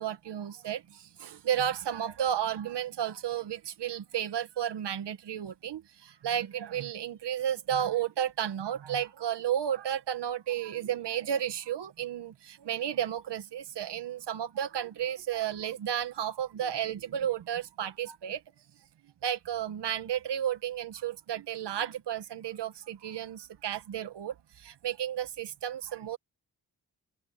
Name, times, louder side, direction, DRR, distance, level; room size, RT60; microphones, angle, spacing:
voice 1, 0.0-18.4 19.2-26.2, right 10 dB, 75° right, 2.1 m, -33 dB
open air
supercardioid pair, 45°, 41 cm